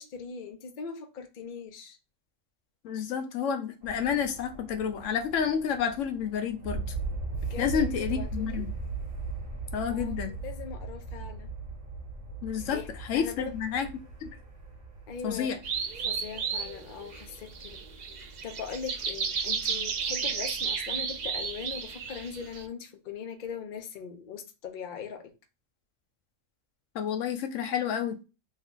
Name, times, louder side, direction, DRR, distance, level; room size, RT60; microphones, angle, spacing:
voice 1, 0.0-2.0 7.5-8.6 9.9-11.5 12.7-12.9 13.1-13.5 15.1-15.5 16.0-17.8 18.4-25.3, left 6 dB, 50° left, 0.7 m, -40 dB
voice 2, 2.8-6.9 7.6-8.7 9.7-10.3 12.4-13.9 14.2-14.4 15.2-15.6 26.9-28.1, left 7 dB, 75° left, 0.9 m, -30 dB
sound 1, 3.8-17.8, right 3 dB, 45° right, 1.3 m, -38 dB
sound 2, 15.6-22.6, right 6 dB, 85° right, 0.3 m, -33 dB
3.0 x 2.3 x 3.7 m
omnidirectional pair, 1.3 m